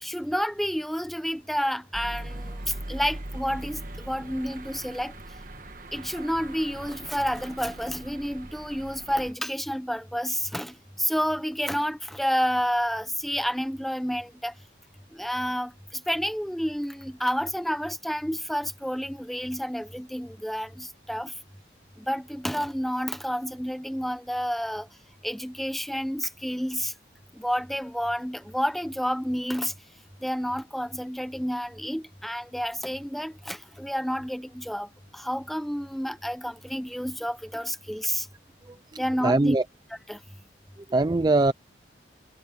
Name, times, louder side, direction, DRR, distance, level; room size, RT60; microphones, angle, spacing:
voice 1, 0.0-5.1 5.9-14.5 15.1-21.3 22.0-24.9 25.2-26.9 27.3-29.7 30.2-38.3 39.0-39.6 40.1-40.2, equal, ahead, 0.9 m, -30 dB
sound 1, 1.9-9.3, right 1 dB, 45° right, 1.5 m, -40 dB
voice 2, 38.7-39.6 40.9-41.5, right 2 dB, 20° right, 0.4 m, -23 dB
head